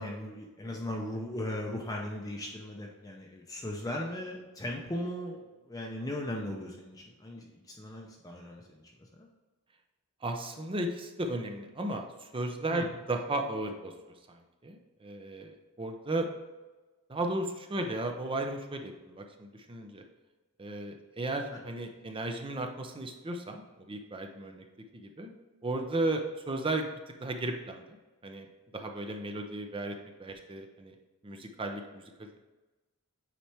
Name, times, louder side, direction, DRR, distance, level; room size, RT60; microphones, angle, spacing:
voice 1, 0.0-8.8 9.2-9.3 12.7-12.9 21.5-21.6, left 1 dB, 15° left, -1 dB, 0.6 m, -38 dB
voice 2, 10.2-13.9 14.3-14.4 14.6-16.3 17.1-20.0 20.6-24.6 24.9-25.3 25.6-28.0 28.2-28.5 28.7-30.9 31.2-32.4, right 2 dB, 25° right, 4 dB, 0.6 m, -35 dB
8.3 x 4.3 x 3.4 m, 1.2 s
head